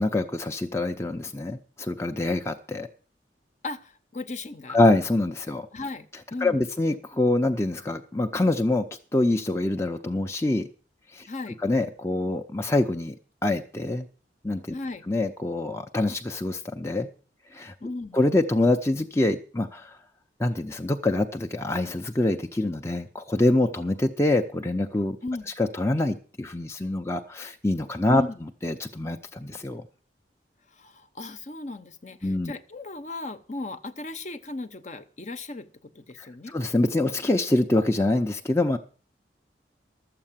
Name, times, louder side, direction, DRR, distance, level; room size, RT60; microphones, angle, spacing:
voice 1, 0.0-2.9 4.7-5.7 6.4-8.8 9.1-10.7 11.1-11.3 11.6-13.1 13.4-14.1 14.4-14.7 15.1-17.1 17.5-17.7 18.1-20.0 20.4-25.2 25.6-29.8 32.2-32.5 36.2-38.8, left 2 dB, 15° left, 4 dB, 0.6 m, -25 dB
voice 2, 3.6-4.8 5.7-6.6 11.3-11.6 14.7-15.1 17.8-18.2 25.2-25.5 28.2-28.4 30.7-36.6, left 2 dB, 40° left, 10 dB, 0.9 m, -36 dB
12.5 x 7.7 x 7.3 m, 0.40 s
head